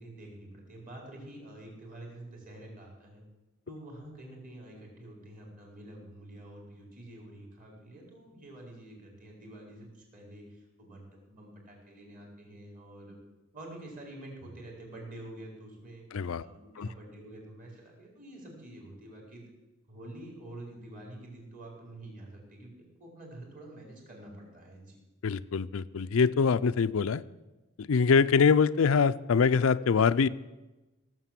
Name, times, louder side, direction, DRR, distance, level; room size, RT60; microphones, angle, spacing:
voice 1, 0.0-3.2 3.7-13.2 13.5-16.0 16.4-19.4 19.9-22.7 23.0-25.0, right 1 dB, 40° right, -1 dB, 4.6 m, -47 dB
voice 2, 16.1-16.5 16.8-16.9 25.2-27.2 27.8-30.3, left 5 dB, 70° left, 14 dB, 0.4 m, -24 dB
17.0 x 7.5 x 7.5 m, 1.1 s
head